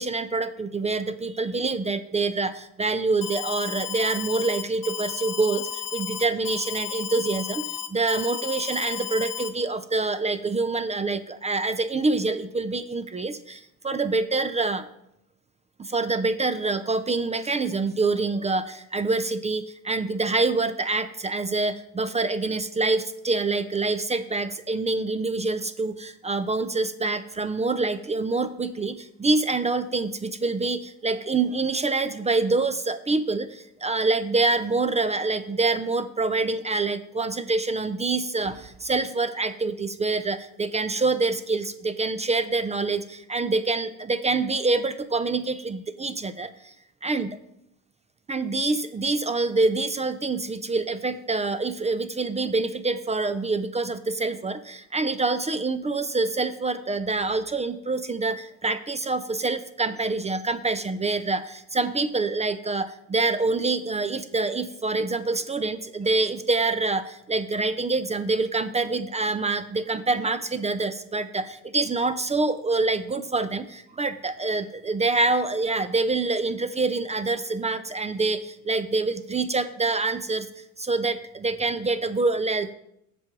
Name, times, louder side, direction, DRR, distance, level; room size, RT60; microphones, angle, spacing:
voice 1, 0.0-7.6 7.9-13.6 13.8-14.9 15.9-33.5 33.8-46.5 47.0-47.4 48.3-80.5 80.8-82.7, right 3 dB, 20° right, 12 dB, 0.3 m, -26 dB
Alarm, 3.2-9.5, left 10 dB, 55° left, 0.8 m, -33 dB
7.5 x 4.6 x 6.0 m, 0.78 s
supercardioid pair, 85°, 40 cm